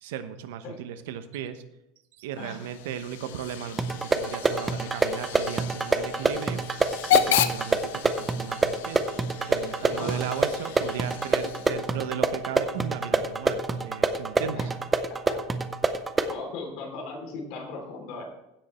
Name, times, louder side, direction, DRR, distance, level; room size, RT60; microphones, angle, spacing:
voice 1, 0.0-1.6 2.2-6.6 7.1-9.0 9.5-14.6, right 9 dB, 75° right, 10 dB, 1.0 m, -36 dB
Hiss / Train / Alarm, 2.4-12.0, left 10 dB, 90° left, 0.7 m, -32 dB
sound 1, 3.8-16.4, right 3 dB, 10° right, 0.5 m, -27 dB
voice 2, 9.9-10.3 14.6-14.7 15.1-15.4 16.3-18.2, left 3 dB, 50° left, 1 dB, 3.1 m, -38 dB
16.0 x 5.4 x 4.3 m, 0.89 s
supercardioid pair, 175°, 0 cm